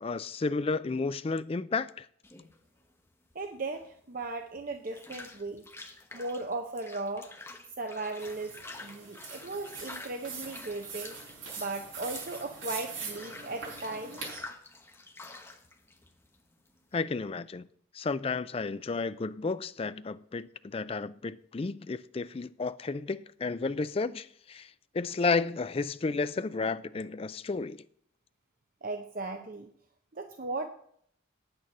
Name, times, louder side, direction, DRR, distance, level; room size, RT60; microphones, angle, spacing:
voice 1, 0.0-2.1 16.9-17.7 17.9-27.8, left 4 dB, 30° left, 0.3 m, -32 dB
sound 1, 2.2-17.0, left 3 dB, 15° left, 1.0 m, -49 dB
voice 2, 3.3-5.7 6.1-7.3 7.8-11.2 11.6-14.5 28.8-29.7 30.1-30.7, right 3 dB, 45° right, 0.7 m, -37 dB
sound 2, 8.2-14.3, right 4 dB, 75° right, 5.5 m, -43 dB
9.1 x 8.9 x 5.4 m
head